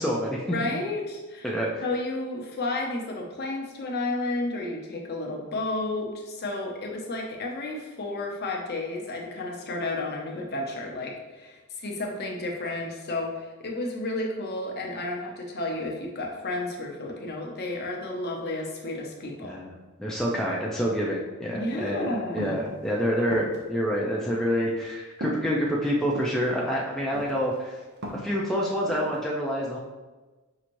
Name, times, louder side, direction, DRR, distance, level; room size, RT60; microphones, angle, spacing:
voice 1, 0.0-0.5 1.4-1.7 19.4-19.7 20.0-27.8 28.1-29.8, equal, ahead, -4 dB, 0.3 m, -27 dB
voice 2, 0.5-1.5 1.8-19.6 21.5-22.7, left 2 dB, 45° left, 0 dB, 0.6 m, -32 dB
sound 1, 22.4-22.7 23.3-23.6 24.2-24.4 25.2-25.4 26.1-26.4 27.1-27.6 27.8-28.3 28.9-29.1, equal, 50° right, 0.7 m, -35 dB
5.6 x 3.0 x 2.5 m, 1.2 s
head